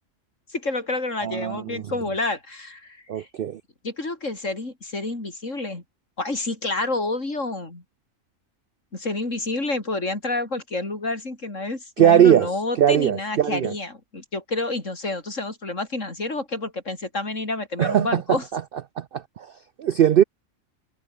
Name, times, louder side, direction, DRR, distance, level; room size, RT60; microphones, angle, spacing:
voice 1, 0.5-3.3 3.8-5.8 6.2-7.8 8.9-18.4, left 2 dB, 65° left, 5.2 m, -29 dB
voice 2, 1.2-1.9 3.1-3.6 12.0-13.7 17.8-18.6 19.0-19.5 19.8-20.2, right 10 dB, 60° right, 0.6 m, -20 dB
omnidirectional pair, 1.4 m